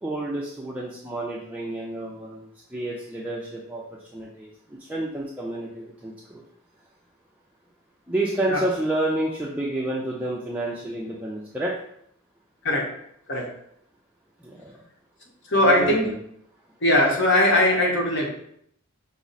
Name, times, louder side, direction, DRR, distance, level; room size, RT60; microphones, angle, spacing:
voice 1, 0.0-3.8 4.1-6.4 8.1-11.8 14.4-14.8 15.6-16.2, right 1 dB, 5° right, -4 dB, 0.4 m, -29 dB
voice 2, 12.6-13.0 13.3-13.5 15.5-16.1 16.8-18.3, left 1 dB, 60° left, -1 dB, 1.1 m, -20 dB
5.9 x 2.0 x 4.0 m, 0.70 s
head